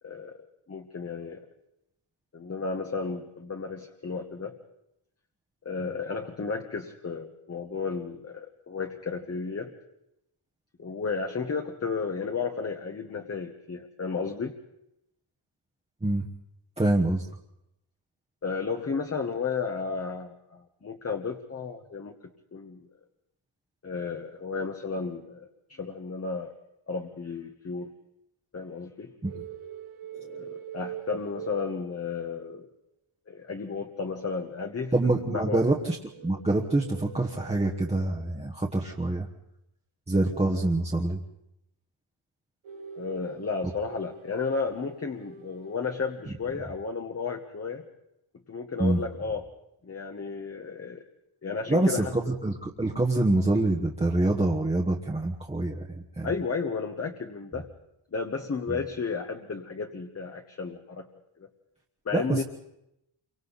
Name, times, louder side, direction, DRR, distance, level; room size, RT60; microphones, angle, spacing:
voice 1, 0.0-0.4 0.7-1.4 2.3-4.6 5.6-9.7 10.8-14.5 18.4-22.1 22.5-22.9 23.8-26.5 26.9-27.9 28.5-29.1 30.1-32.7 33.3-34.9 35.3-35.6 42.9-47.8 48.5-49.4 49.8-51.0 51.4-52.1 56.2-57.7 58.1-61.1 61.4-61.5 62.0-62.4, left 5 dB, 30° left, 3 dB, 1.3 m, -33 dB
voice 2, 16.8-17.3 29.2-29.4 34.9-36.0 36.2-39.3 40.1-41.2 46.3-46.4 48.8-49.0 51.7-56.3 58.7-58.8 62.1-62.4, right 2 dB, 15° right, -2 dB, 1.3 m, -26 dB
sound 1, 29.2-32.4 35.9-38.5 42.6-46.5, right 7 dB, 80° right, 1.9 m, -44 dB
28.5 x 24.5 x 4.1 m, 0.82 s
wide cardioid pair, 175°, 49 cm